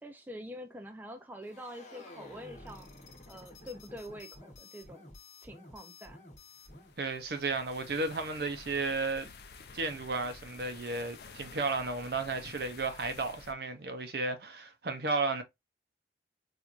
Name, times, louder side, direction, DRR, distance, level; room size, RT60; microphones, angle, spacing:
voice 1, 0.0-2.9 3.3-5.1 5.4-6.2, equal, 10° right, 0.4 m, -45 dB
sound 1, 1.4-6.9, left 2 dB, 40° left, 1.0 m, -51 dB
sound 2, 6.7-13.5, left 4 dB, 60° left, 0.5 m, -51 dB
voice 2, 7.0-9.3 9.7-15.4, right 3 dB, 60° right, 0.6 m, -33 dB
4.4 x 2.5 x 2.4 m
head